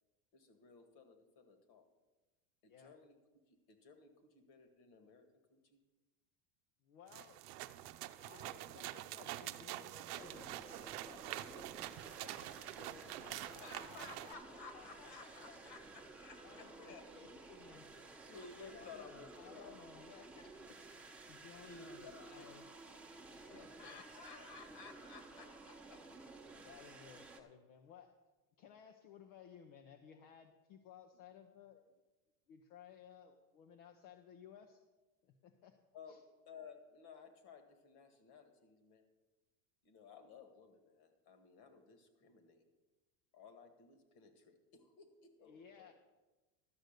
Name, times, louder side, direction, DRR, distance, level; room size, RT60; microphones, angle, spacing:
voice 1, 0.3-1.9 2.6-3.2 3.5-5.8 13.4-17.1 18.3-19.8 21.6-22.5 23.7-26.1 35.9-36.2 36.5-39.0 39.8-42.7 43.3-45.9, left 4 dB, 50° left, 7 dB, 1.9 m, -56 dB
voice 2, 6.8-7.4 8.2-14.1 14.7-15.6 16.4-17.9 18.3-20.8 21.3-22.6 23.2-24.0 26.6-28.2 28.6-31.9 32.5-34.9 35.2-35.8 36.1-36.2 45.4-45.9, left 8 dB, 70° left, 5 dB, 1.1 m, -59 dB
sound 1, 7.1-14.3, right 15 dB, 90° right, 0.7 m, -46 dB
sound 2, 10.2-27.4, right 3 dB, 5° right, 1.0 m, -55 dB
12.5 x 6.5 x 6.6 m, 1.2 s
supercardioid pair, 135°, 45 cm